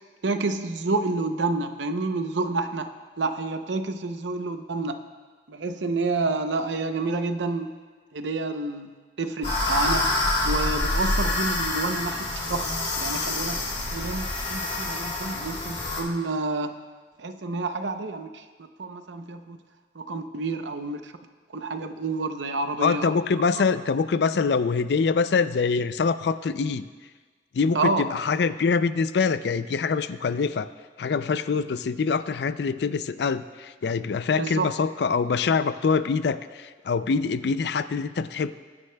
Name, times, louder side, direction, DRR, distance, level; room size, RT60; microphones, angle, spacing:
voice 1, 0.2-2.9 3.2-5.0 5.5-7.7 8.1-8.9 9.2-10.1 10.4-13.6 13.9-16.7 17.2-18.3 18.6-19.6 20.0-21.1 21.5-23.1 27.7-28.1 34.4-34.7, right 3 dB, 85° right, 8 dB, 0.7 m, -29 dB
sound 1, 9.4-16.0, left 2 dB, 40° left, 2.6 m, -27 dB
voice 2, 22.8-26.8 27.5-30.7 31.0-38.5, left 5 dB, 65° left, 13 dB, 0.4 m, -24 dB
21.0 x 9.7 x 2.3 m, 1.5 s
head